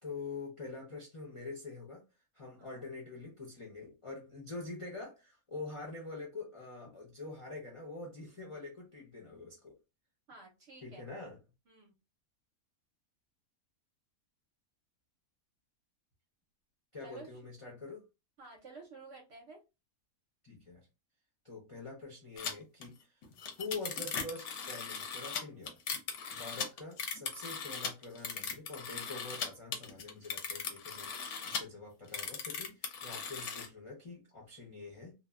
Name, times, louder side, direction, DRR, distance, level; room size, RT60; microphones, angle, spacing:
voice 1, 0.0-2.0 2.3-9.8 10.8-11.4 16.9-18.1 20.4-20.9 21.4-23.2 23.6-25.8 26.3-35.1, left 3 dB, 40° left, 0.4 m, -45 dB
voice 2, 2.5-2.9 10.3-11.0 11.7-11.9 17.0-17.5 18.4-19.6, right 3 dB, 55° right, 0.8 m, -52 dB
sound 1, 22.4-22.5 22.8-22.9 23.2-29.5 29.7-31.6 32.1-33.7, left 5 dB, 65° left, 0.8 m, -38 dB
2.6 x 2.1 x 2.3 m
omnidirectional pair, 1.6 m